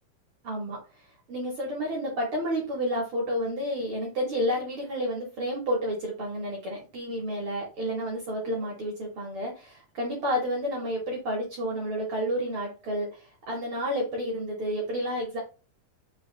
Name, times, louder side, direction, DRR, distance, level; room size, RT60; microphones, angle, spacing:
voice 1, 0.4-0.8 1.3-15.4, equal, 65° right, -2 dB, 1.4 m, -30 dB
5.5 x 2.5 x 3.1 m, 0.32 s
omnidirectional pair, 4.0 m